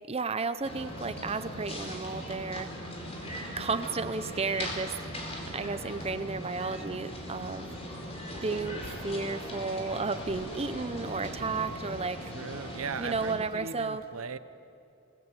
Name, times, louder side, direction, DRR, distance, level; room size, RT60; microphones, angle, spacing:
voice 1, 0.1-2.7 3.6-5.0 5.5-7.7 8.4-12.2 13.0-14.0, right 4 dB, 30° right, 12 dB, 0.7 m, -33 dB
sound 1, 0.6-13.4, equal, 30° left, 4.0 m, -39 dB
voice 2, 12.3-14.4, right 5 dB, 75° right, 12 dB, 0.8 m, -38 dB
27.5 x 19.5 x 8.3 m, 2.7 s
head